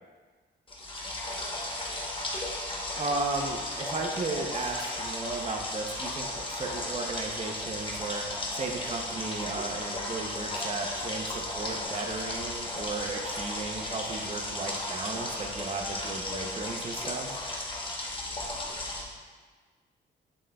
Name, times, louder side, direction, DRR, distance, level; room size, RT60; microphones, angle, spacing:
sound 1, 0.7-19.0, left 1 dB, 25° left, 1.0 m, -35 dB
voice 1, 2.9-17.5, right 3 dB, 35° right, 2 dB, 0.7 m, -35 dB
7.5 x 6.2 x 2.3 m, 1.5 s
cardioid pair, 110°, 20 cm